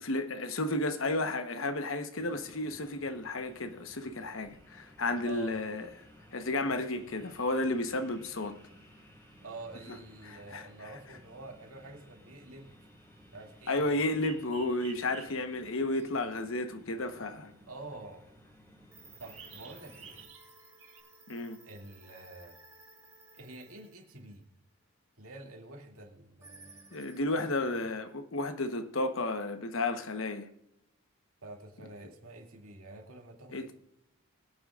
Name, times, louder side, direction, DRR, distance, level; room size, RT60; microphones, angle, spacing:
voice 1, 0.1-5.9 6.3-8.6 10.3-10.7 13.7-17.5 21.3-21.6 26.9-30.5 33.5-33.7, left 2 dB, 70° left, 1.1 m, -32 dB
sound 1, 2.2-20.3, equal, 10° left, 4.0 m, -57 dB
voice 2, 5.2-5.6 9.4-12.7 13.3-13.9 17.7-18.3 19.2-20.2 21.6-22.6 23.3-24.4 25.2-26.8 27.4-27.7 31.4-33.7, right 2 dB, 85° right, 2.4 m, -47 dB
sound 2, 14.0-16.3 19.3-20.5 20.8-21.0, right 7 dB, 65° right, 2.3 m, -52 dB
sound 3, 18.9-24.4 26.4-27.2, right 2 dB, 15° right, 2.2 m, -56 dB
22.5 x 8.8 x 2.5 m
head